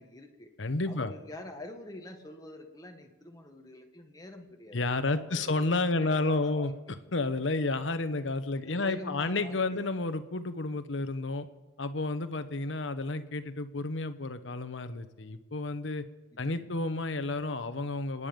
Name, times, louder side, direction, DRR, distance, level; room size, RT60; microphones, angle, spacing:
voice 1, 0.0-0.5 0.9-4.8 5.1-6.7 8.7-9.8 16.3-16.7, left 1 dB, 20° left, 3 dB, 1.7 m, -46 dB
voice 2, 0.6-1.1 4.7-6.7 7.1-11.5 11.8-16.0 16.4-18.3, left 2 dB, 75° left, 10 dB, 1.1 m, -31 dB
28.0 x 9.8 x 5.3 m, 1.2 s
head